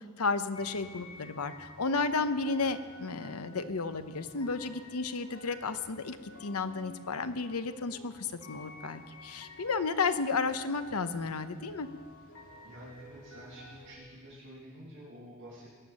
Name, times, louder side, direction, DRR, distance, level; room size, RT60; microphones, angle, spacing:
voice 1, 0.2-11.9, left 4 dB, 85° left, 10 dB, 0.9 m, -33 dB
sound 1, 0.5-14.0, left 1 dB, 65° left, 2.1 m, -51 dB
voice 2, 12.6-15.8, equal, 55° right, -9 dB, 5.6 m, -49 dB
22.0 x 9.0 x 6.4 m, 1.5 s
head